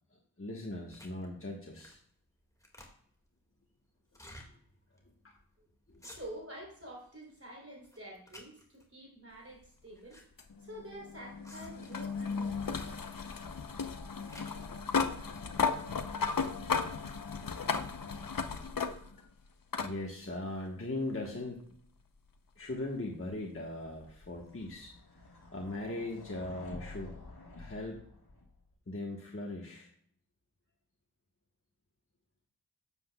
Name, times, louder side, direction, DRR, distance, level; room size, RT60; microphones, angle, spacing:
voice 1, 0.4-2.0 4.5-4.6 5.2-5.3 5.9-6.0 19.8-21.6 22.6-24.9 25.5-27.2 27.6-28.0 28.9-29.9, left 2 dB, 35° left, -1 dB, 1.3 m, -39 dB
sound 1, 0.9-1.2 1.7-2.1 2.4-3.2 4.1-4.5 5.0-5.1 5.3-5.5 5.9-6.6 7.0-7.5 7.8-8.9 9.6-10.2 10.5-10.6 11.4-12.2 13.1-13.4 13.8-14.7, left 1 dB, 10° left, 1.9 m, -53 dB
voice 2, 6.0-10.2 10.6-13.4 18.5-19.3, right 1 dB, 35° right, -1 dB, 3.5 m, -49 dB
sound 2, 10.4-19.3 19.7-19.9 21.2-21.3 24.2-24.3, left 5 dB, 60° left, 0.8 m, -35 dB
sound 3, 23.9-28.7, left 2 dB, 80° left, 1.5 m, -50 dB
11.5 x 7.9 x 2.3 m, 0.63 s
wide cardioid pair, 45°, 38 cm